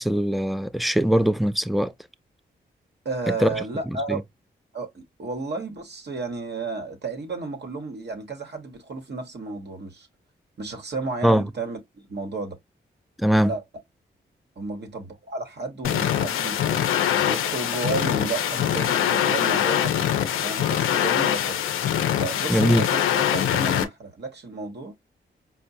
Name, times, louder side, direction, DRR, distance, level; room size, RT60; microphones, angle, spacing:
voice 1, 0.0-1.9 3.3-3.5 4.1-4.2 11.2-11.5 13.2-13.5 22.5-22.9, equal, ahead, 0.4 m, -21 dB
voice 2, 3.0-4.2 4.7-10.1 10.6-12.6 13.4-13.6 14.6-16.8 17.2-19.9 20.4-21.6 22.2-24.9, right 3 dB, 55° right, 1.0 m, -32 dB
sound 1, 15.8-23.8, left 10 dB, 90° left, 0.5 m, -23 dB
4.5 x 2.1 x 2.6 m
supercardioid pair, 45°, 21 cm